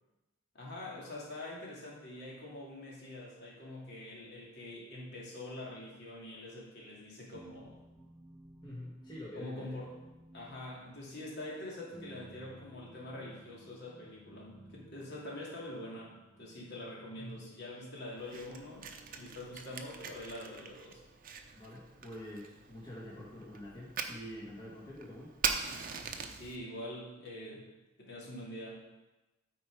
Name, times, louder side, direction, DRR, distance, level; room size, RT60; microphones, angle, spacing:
voice 1, 0.5-7.8 9.4-9.9 10.3-16.1 16.4-21.0 26.3-27.7 28.0-28.8, left 1 dB, 55° left, -4 dB, 2.6 m, -45 dB
sound 1, 7.3-19.9, right 1 dB, 5° right, 0.7 m, -57 dB
voice 2, 8.6-9.8 17.1-17.4 21.6-25.3, left 1 dB, 20° left, -6 dB, 1.5 m, -46 dB
Fire, 18.2-26.6, right 6 dB, 45° right, 0.7 m, -41 dB
12.5 x 4.6 x 4.7 m, 1.1 s
head